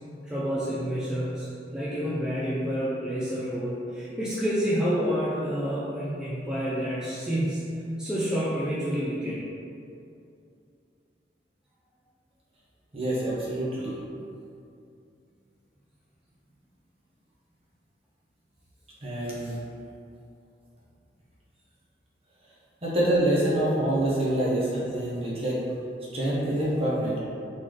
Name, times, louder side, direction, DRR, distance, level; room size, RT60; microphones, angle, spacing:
voice 1, 0.2-1.5 1.7-7.7 8.0-9.5, equal, 5° right, -10 dB, 0.6 m, -28 dB
voice 2, 12.9-14.0 19.0-19.6 22.8-25.6 26.1-27.2, right 1 dB, 35° right, -7 dB, 1.0 m, -26 dB
4.0 x 3.3 x 3.8 m, 2.5 s
head